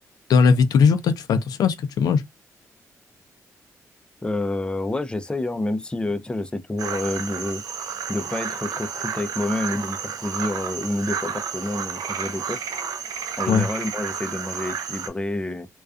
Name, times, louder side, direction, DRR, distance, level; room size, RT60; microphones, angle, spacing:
voice 1, 0.3-2.2 13.5-13.7, left 5 dB, 80° left, 0.4 m, -18 dB
voice 2, 4.2-7.6 8.1-12.6 13.4-15.7, left 2 dB, 15° left, 0.4 m, -28 dB
sound 1, 6.8-15.1, right 7 dB, 75° right, 0.5 m, -31 dB
2.4 x 2.3 x 2.3 m
cardioid pair, 65°, 6 cm